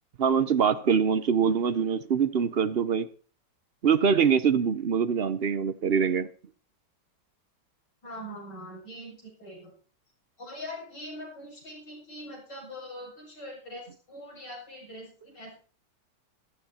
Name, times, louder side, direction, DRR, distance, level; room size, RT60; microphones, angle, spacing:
voice 1, 0.2-3.1 3.8-6.3, right 7 dB, 50° right, 0.8 m, -24 dB
voice 2, 8.0-9.7 10.4-15.5, equal, 85° left, 8.2 m, -42 dB
15.0 x 12.5 x 4.3 m
omnidirectional pair, 1.8 m